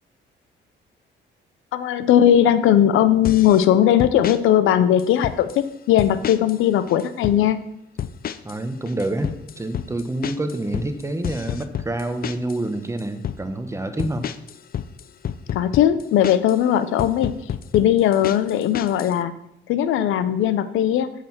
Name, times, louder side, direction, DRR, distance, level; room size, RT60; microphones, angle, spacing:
voice 1, 1.7-7.6 15.5-17.4 17.7-19.3 19.7-21.1, left 10 dB, 85° left, 13 dB, 0.7 m, -18 dB
sound 1, 3.2-3.7 4.0-4.4 5.0-5.6 6.0-6.6 6.9-7.4 8.0-8.6 8.9-12.6 13.0-13.4 14.0-16.6 17.0-19.1, left 9 dB, 50° left, 0.5 m, -30 dB
voice 2, 8.4-14.3, right 1 dB, 15° right, 8 dB, 1.1 m, -27 dB
7.8 x 6.8 x 5.9 m, 0.78 s
cardioid pair, 90°, 20 cm